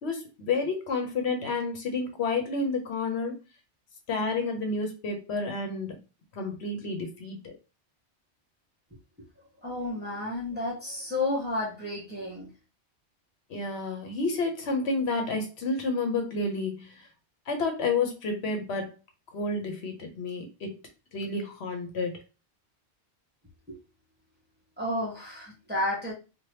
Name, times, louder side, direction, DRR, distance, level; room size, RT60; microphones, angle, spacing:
voice 1, 0.0-3.4 4.1-6.0 6.4-7.5 13.5-16.9 17.5-18.9 19.3-20.7 21.1-22.2, left 3 dB, 70° left, 4 dB, 1.0 m, -30 dB
voice 2, 9.6-12.5 23.7-23.8 24.8-26.1, left 2 dB, 10° right, -5 dB, 1.1 m, -31 dB
2.8 x 2.4 x 3.2 m, 0.30 s
omnidirectional pair, 1.1 m